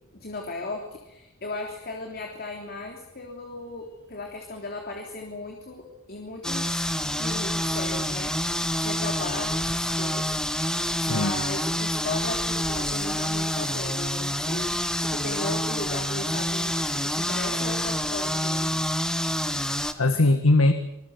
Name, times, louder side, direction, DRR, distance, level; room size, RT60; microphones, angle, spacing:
voice 1, 0.1-10.3 10.7-18.7, left 2 dB, 50° left, 2 dB, 3.4 m, -36 dB
sound 1, 6.4-19.9, equal, 5° left, 1.5 m, -27 dB
voice 2, 11.0-11.4 19.4-20.7, left 2 dB, 90° left, 8 dB, 1.7 m, -22 dB
26.5 x 20.5 x 8.1 m, 0.92 s
head